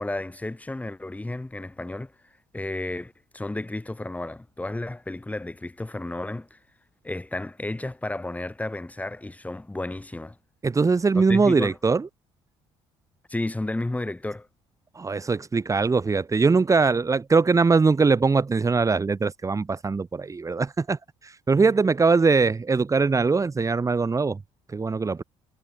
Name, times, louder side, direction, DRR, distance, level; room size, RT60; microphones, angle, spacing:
voice 1, 0.0-2.1 2.5-6.6 7.0-10.4 11.3-11.7 13.3-14.5, left 2 dB, 10° left, 7.9 m, -32 dB
voice 2, 10.6-12.1 14.9-24.4 24.7-25.2, right 4 dB, 25° right, 3.3 m, -22 dB
supercardioid pair, 80°, 12 cm